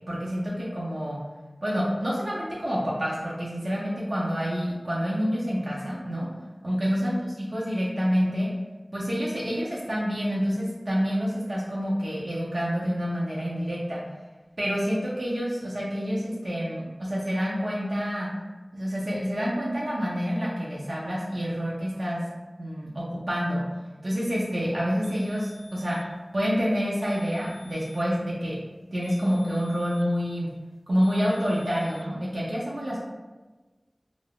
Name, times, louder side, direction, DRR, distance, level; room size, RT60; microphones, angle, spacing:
voice 1, 0.1-1.2 1.6-6.3 6.6-7.1 7.5-8.5 8.9-14.0 14.6-18.3 18.7-22.2 22.6-23.6 24.0-26.0 26.3-28.6 28.9-30.5 30.9-33.0, equal, 85° right, -7 dB, 0.5 m, -28 dB
sound 1, 25.0-26.2 27.0-28.2 29.0-30.2 31.0-32.1, left 1 dB, 50° left, 0.4 m, -52 dB
2.4 x 2.3 x 3.4 m, 1.2 s
wide cardioid pair, 50°, 0 cm